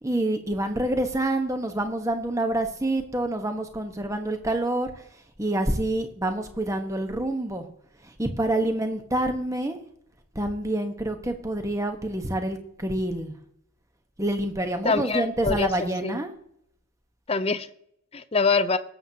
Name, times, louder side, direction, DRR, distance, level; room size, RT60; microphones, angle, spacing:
voice 1, 0.0-5.1 5.4-7.7 8.0-9.8 10.3-13.3 14.2-16.3, right 1 dB, 15° right, 6 dB, 1.1 m, -27 dB
voice 2, 14.8-15.7 16.0-16.2 17.3-17.7 18.1-18.8, left 4 dB, 25° left, 11 dB, 0.5 m, -24 dB
17.5 x 7.9 x 2.8 m, 0.70 s
head